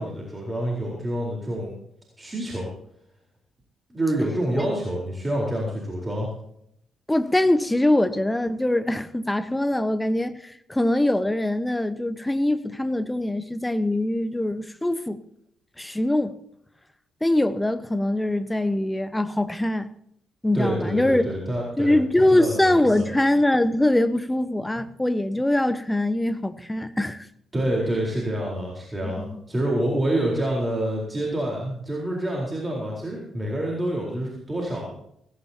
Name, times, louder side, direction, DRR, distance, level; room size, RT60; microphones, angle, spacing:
voice 1, 0.0-1.7 2.2-2.7 3.9-6.3 20.5-22.0 22.3-23.0 24.8-24.9 27.5-34.9, right 1 dB, 20° right, 4.2 m, -27 dB
voice 2, 7.1-15.2 15.8-16.4 17.2-19.9 20.4-21.3 21.8-27.3 29.0-29.4, left 1 dB, 10° left, 1.1 m, -23 dB
17.0 x 16.5 x 2.9 m
figure-of-eight pair, 40°, 0 cm